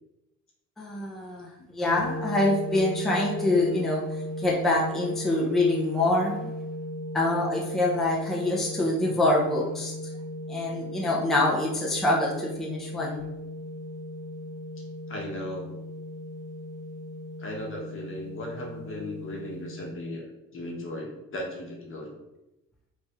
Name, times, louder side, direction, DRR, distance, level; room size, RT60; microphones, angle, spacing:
voice 1, 0.8-4.0 4.4-6.5 7.1-9.9 10.5-13.2, left 2 dB, ahead, -4 dB, 0.6 m, -25 dB
sound 1, 1.8-19.9, left 1 dB, 75° right, 1.0 m, -37 dB
voice 2, 14.8-15.8 17.4-20.3 20.5-22.1, left 1 dB, 45° left, -1 dB, 1.0 m, -37 dB
3.2 x 2.6 x 3.4 m, 0.94 s
cardioid pair, 90°, 30 cm